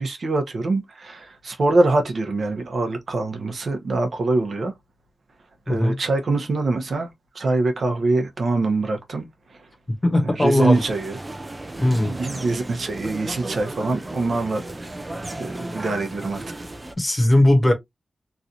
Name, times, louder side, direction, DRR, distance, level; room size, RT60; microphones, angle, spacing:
voice 1, 0.0-4.7 5.7-7.1 7.3-9.6 10.2-11.2 12.0-15.1 15.4-16.7, right 2 dB, 65° right, 0.8 m, -24 dB
voice 2, 10.0-10.8 11.8-12.1 17.0-17.7, left 1 dB, 25° left, 1.0 m, -18 dB
sound 1, 10.7-16.9, right 2 dB, 20° right, 0.4 m, -35 dB
3.1 x 2.6 x 2.7 m
wide cardioid pair, 105°, 0 cm